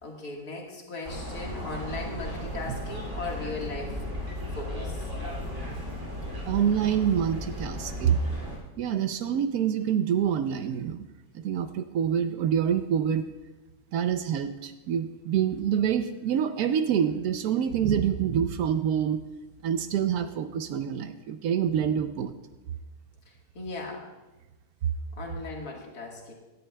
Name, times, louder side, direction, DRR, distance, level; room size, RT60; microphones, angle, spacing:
voice 1, 0.0-4.0 4.6-5.0 23.6-24.1 25.2-26.3, left 3 dB, 75° left, -1 dB, 2.2 m, -37 dB
sound 1, 1.0-8.6, equal, 50° right, 3.1 m, -35 dB
voice 2, 6.5-8.2 8.8-11.1 11.3-13.2 13.9-19.2 19.6-22.3, right 8 dB, 75° right, 10 dB, 1.0 m, -26 dB
16.5 x 11.0 x 2.2 m, 1.1 s
omnidirectional pair, 1.6 m